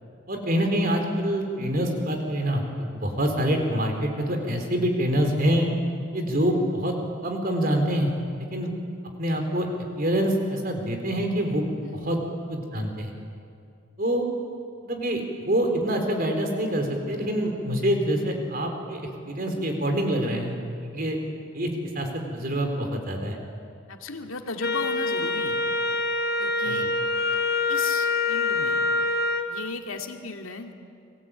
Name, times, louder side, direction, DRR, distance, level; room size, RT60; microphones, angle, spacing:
voice 1, 0.3-5.7 6.1-6.9 7.2-8.1 8.5-8.7 9.2-9.7 10.0-11.6 11.9-12.2 12.5-13.1 14.0-14.3 14.8-20.6 20.8-21.2 21.5-21.7 21.9-23.4 26.7-26.9, equal, 45° right, 4 dB, 4.0 m, -26 dB
voice 2, 23.9-25.6 26.4-26.9 27.7-28.8 29.5-31.0, left 4 dB, 80° left, 4 dB, 2.3 m, -36 dB
Wind instrument woodwind instrument, 24.6-29.5, left 3 dB, 45° left, 1.4 m, -25 dB
30.0 x 22.0 x 8.9 m, 2.4 s
head